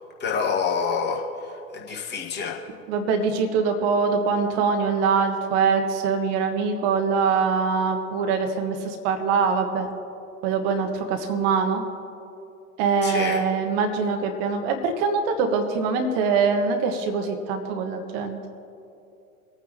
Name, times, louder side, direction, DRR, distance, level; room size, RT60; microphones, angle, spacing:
voice 1, 0.2-2.6 13.0-13.4, left 5 dB, 25° left, -1 dB, 1.8 m, -27 dB
voice 2, 2.9-9.9 10.4-11.8 12.8-18.4, right 5 dB, 45° right, 5 dB, 1.4 m, -23 dB
24.5 x 9.0 x 2.9 m, 2.7 s
figure-of-eight pair, 90°, 42 cm